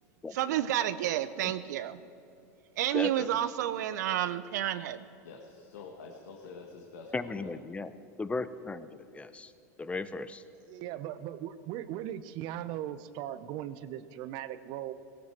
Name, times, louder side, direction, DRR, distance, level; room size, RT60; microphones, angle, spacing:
voice 1, 0.3-2.0 2.8-5.1, right 12 dB, 75° right, 12 dB, 0.6 m, -30 dB
voice 2, 2.9-3.4 7.1-7.9 8.2-8.9 9.1-9.5 9.8-10.4, left 3 dB, 15° left, 13 dB, 0.8 m, -36 dB
voice 3, 5.2-7.5, left 4 dB, 80° left, 1 dB, 1.8 m, -47 dB
voice 4, 10.7-14.9, right 12 dB, 55° right, 14 dB, 0.9 m, -38 dB
18.0 x 17.5 x 4.5 m, 2.8 s
hypercardioid pair, 110°, 9 cm